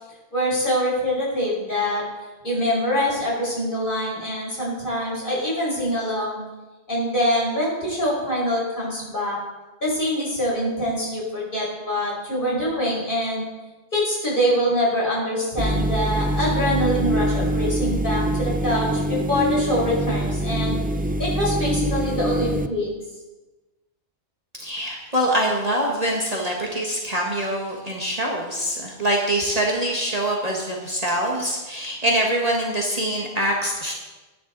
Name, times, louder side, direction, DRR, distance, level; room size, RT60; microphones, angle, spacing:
voice 1, 0.3-2.0 2.4-6.4 6.9-9.4 9.8-13.5 13.9-20.8 21.2-22.9, equal, 50° left, -5 dB, 5.8 m, -24 dB
sound 1, 15.6-22.7, right 1 dB, 15° right, 0.3 m, -24 dB
voice 2, 24.5-33.9, right 1 dB, 35° right, -2 dB, 1.8 m, -24 dB
20.5 x 10.0 x 4.1 m, 1.2 s
omnidirectional pair, 1.2 m